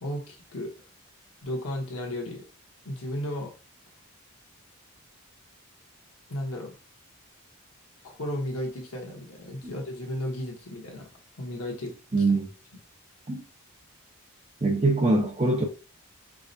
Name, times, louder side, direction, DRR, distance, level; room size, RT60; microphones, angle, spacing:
voice 1, 0.0-0.7 1.4-2.4 2.8-3.5 6.3-6.7 8.0-11.1 11.4-11.9, left 1 dB, 85° left, 1.1 m, -34 dB
voice 2, 12.1-12.5 13.3-13.4 14.6-15.6, right 2 dB, 30° right, 0.8 m, -23 dB
4.7 x 2.1 x 2.6 m
head